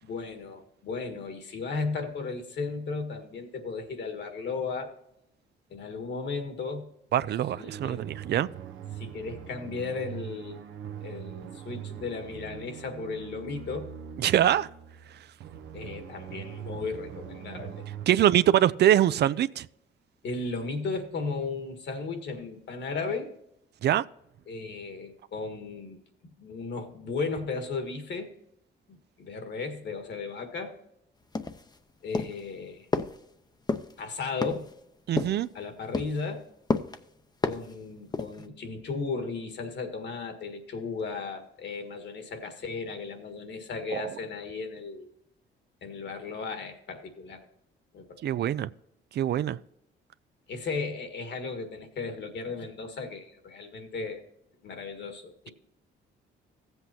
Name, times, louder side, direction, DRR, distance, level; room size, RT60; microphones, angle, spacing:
voice 1, 0.0-4.9 5.7-6.9 7.6-8.1 9.0-10.6 11.0-13.9 15.7-17.8 20.2-23.3 24.5-28.3 28.9-30.8 32.0-32.9 34.0-34.7 35.5-36.4 37.4-45.1 45.8-47.4 47.9-48.5 50.5-54.2 54.6-55.5, left 4 dB, 60° left, 1.7 m, -35 dB
voice 2, 7.1-8.5 14.2-14.7 18.1-19.7 23.8-24.0 35.1-35.5 43.9-44.0 48.2-48.7 49.1-49.6, right 11 dB, 60° right, 0.4 m, -23 dB
sound 1, 7.5-18.1, right 9 dB, 75° right, 0.8 m, -42 dB
sound 2, 31.3-31.8 32.1-32.5 32.9-33.2 33.7-33.9 34.4-34.7 35.2-35.5 35.9-36.2 36.7-37.0 37.4-37.7 38.1-38.5, left 3 dB, 20° left, 0.7 m, -30 dB
15.0 x 8.0 x 2.8 m
cardioid pair, 90°, 20 cm